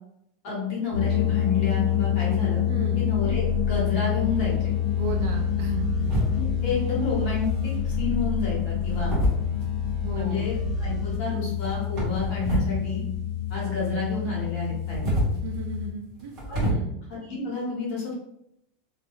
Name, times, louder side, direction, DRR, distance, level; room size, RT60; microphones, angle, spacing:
voice 1, 0.4-2.6 3.0-4.7 6.3-9.2 10.1-13.0 13.5-15.1 16.5-16.7 17.1-18.2, left 4 dB, 40° left, -4 dB, 1.0 m, -30 dB
sound 1, 0.9-15.9, left 11 dB, 75° left, 0.7 m, -27 dB
voice 2, 2.7-3.1 5.0-5.9 10.0-10.4 15.3-16.3 16.6-16.9, right 4 dB, 45° right, 1 dB, 0.5 m, -35 dB
sound 2, 3.1-11.2, right 2 dB, 20° left, 0.5 m, -34 dB
sound 3, 6.0-6.7 7.7-8.1 8.8-10.0 11.5-12.8 13.1-13.9 14.7-16.7, right 1 dB, 25° right, 0.9 m, -29 dB
2.2 x 2.1 x 3.0 m, 0.77 s
supercardioid pair, 180°, 0 cm